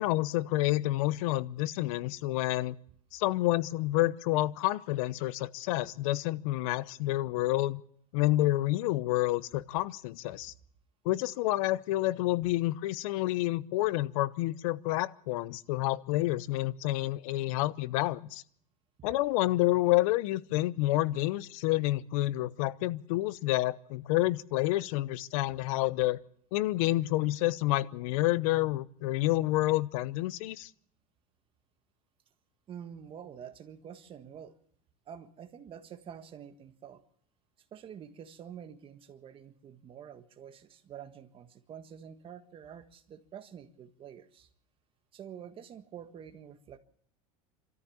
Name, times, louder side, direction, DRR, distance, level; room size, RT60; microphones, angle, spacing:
voice 1, 0.0-2.8 3.1-7.8 8.1-10.5 11.0-18.4 19.0-26.2 26.5-30.7, left 17 dB, 70° left, 17 dB, 0.8 m, -29 dB
voice 2, 32.7-34.5 35.0-37.0 37.7-44.5 45.1-46.8, right 8 dB, 30° right, 9 dB, 1.5 m, -47 dB
26.5 x 13.5 x 7.2 m, 0.64 s
supercardioid pair, 140°, 18 cm